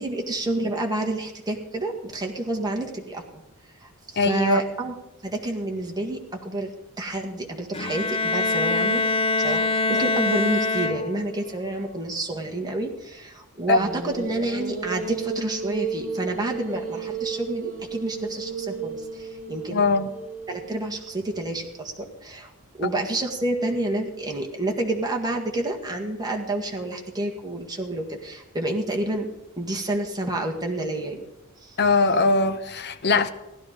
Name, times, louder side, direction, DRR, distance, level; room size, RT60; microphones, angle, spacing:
voice 1, 0.0-3.4 3.8-5.0 5.2-6.7 7.0-9.0 9.4-19.8 20.5-22.5 22.8-29.3 29.6-31.3 31.6-31.8, right 2 dB, 20° right, 1.8 m, -29 dB
voice 2, 4.2-4.6 13.7-13.8 19.7-20.1 31.8-33.3, left 3 dB, 50° left, 0.9 m, -21 dB
Bowed string instrument, 7.7-11.4, left 2 dB, 25° left, 0.6 m, -24 dB
sound 1, 13.7-21.1, right 5 dB, 35° right, 2.1 m, -33 dB
15.5 x 12.0 x 5.2 m
head